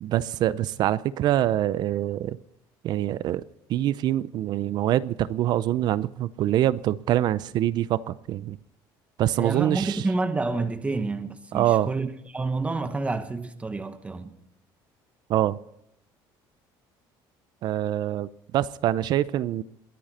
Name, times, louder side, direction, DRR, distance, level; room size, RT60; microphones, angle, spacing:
voice 1, 0.0-2.4 2.8-3.4 3.7-8.6 9.2-10.0 11.5-11.9 15.3-15.6 17.6-19.6, right 13 dB, 55° right, 0.5 m, -25 dB
voice 2, 9.4-14.3, right 3 dB, 15° right, 1.2 m, -29 dB
22.0 x 10.0 x 4.2 m
cardioid pair, 135°, 9 cm